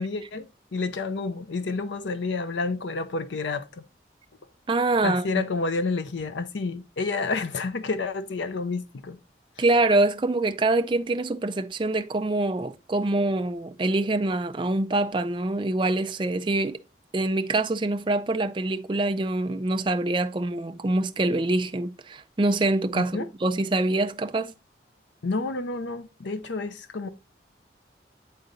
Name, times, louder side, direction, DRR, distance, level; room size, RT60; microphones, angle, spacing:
voice 1, 0.0-3.8 5.0-9.2 23.0-23.3 25.2-27.1, left 3 dB, 85° left, 0.6 m, -29 dB
voice 2, 4.7-5.4 9.6-16.8 17.1-24.5, right 2 dB, 25° right, 0.4 m, -25 dB
9.5 x 3.8 x 3.9 m
head